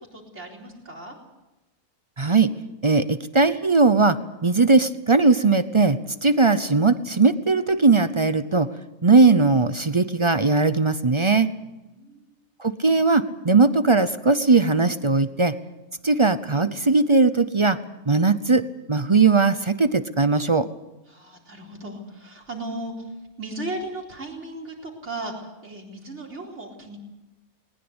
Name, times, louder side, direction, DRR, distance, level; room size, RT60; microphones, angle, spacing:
voice 1, 0.1-1.2 11.8-12.4 21.1-23.1 23.4-27.0, right 2 dB, 50° right, 0 dB, 4.4 m, -36 dB
voice 2, 2.2-2.5 2.8-8.7 9.0-11.5 12.6-15.6 16.0-17.8 18.1-20.7, right 3 dB, 35° right, 12 dB, 0.5 m, -19 dB
20.5 x 20.0 x 8.0 m, 1.0 s
omnidirectional pair, 1.6 m